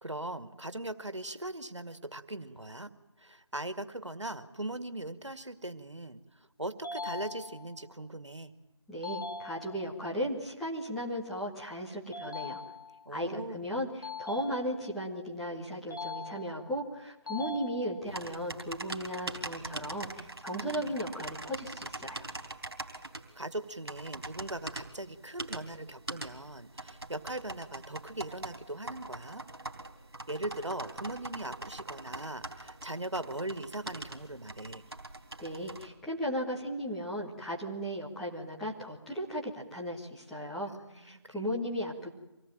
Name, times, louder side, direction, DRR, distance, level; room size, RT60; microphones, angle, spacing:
voice 1, 0.0-2.9 3.2-6.2 6.6-8.5 13.1-13.7 20.2-21.0 23.4-29.4 30.3-34.8 40.9-41.4, right 1 dB, 80° right, 11 dB, 2.2 m, -40 dB
sound 1, 6.8-7.9 9.0-10.0 12.1-13.1 14.0-15.1 15.9-16.8 17.3-18.3, left 4 dB, 45° left, 3.2 m, -41 dB
voice 2, 8.9-12.6 13.1-13.9 14.2-22.2 35.4-42.1, equal, ahead, -8 dB, 1.6 m, -36 dB
sound 2, 18.1-35.9, right 2 dB, 55° right, 3.9 m, -43 dB
26.0 x 19.0 x 9.0 m, 0.97 s
figure-of-eight pair, 160°, 15 cm